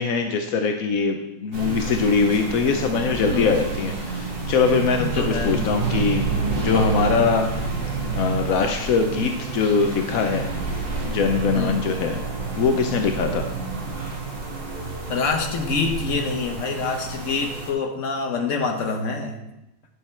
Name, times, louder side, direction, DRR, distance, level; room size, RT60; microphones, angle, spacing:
voice 1, 0.0-7.5 8.1-10.5 11.0-12.2 12.6-13.4, left 5 dB, 70° left, 5 dB, 0.8 m, -22 dB
sound 1, 1.5-17.7, right 4 dB, 30° right, 1.5 m, -29 dB
voice 2, 3.3-3.6 5.0-5.7 6.7-7.0 11.5-11.8 15.1-19.4, left 4 dB, 45° left, 4 dB, 1.1 m, -26 dB
11.0 x 6.4 x 4.4 m, 0.88 s
omnidirectional pair, 2.3 m